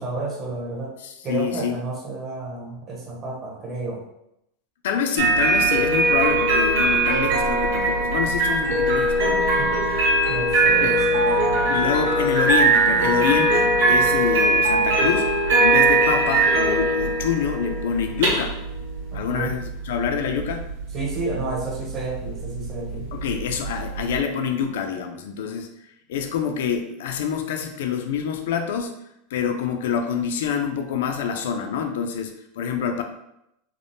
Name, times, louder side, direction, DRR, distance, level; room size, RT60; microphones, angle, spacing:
voice 1, 0.0-0.9 1.2-4.0 9.6-9.8 10.3-11.7 19.1-19.5 20.9-23.1, right 3 dB, 25° right, -2 dB, 0.6 m, -31 dB
voice 2, 1.0-1.8 4.8-9.6 10.8-11.0 11.7-15.3 15.6-18.6 19.1-20.7 23.1-25.7 26.1-28.9 29.3-33.0, left 7 dB, 75° left, 5 dB, 0.3 m, -26 dB
sound 1, 5.2-24.2, right 2 dB, 65° right, 1.2 m, -20 dB
3.3 x 2.0 x 2.6 m, 0.81 s
supercardioid pair, 175°, 0 cm